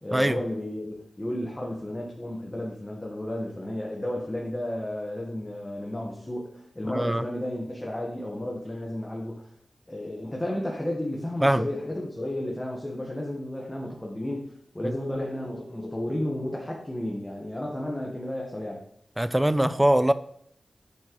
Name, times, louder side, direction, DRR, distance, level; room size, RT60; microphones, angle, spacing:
voice 1, 0.0-9.5 9.9-14.5 14.7-18.8, left 1 dB, 20° left, -2 dB, 1.2 m, -33 dB
voice 2, 6.9-7.2 11.4-11.7 14.8-15.0 19.2-20.1, right 1 dB, 15° right, 13 dB, 0.4 m, -22 dB
8.3 x 4.4 x 3.0 m, 0.67 s
cardioid pair, 55°, 0 cm